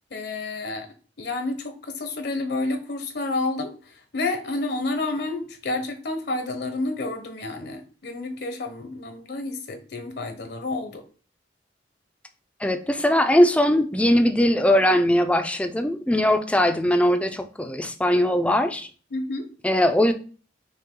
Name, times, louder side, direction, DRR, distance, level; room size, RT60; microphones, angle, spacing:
voice 1, 0.1-0.9 1.2-11.0 19.1-19.5, left 2 dB, 65° left, 0.9 m, -30 dB
voice 2, 12.6-18.9 19.6-20.1, left 1 dB, 5° left, 0.4 m, -20 dB
5.6 x 2.3 x 3.7 m
head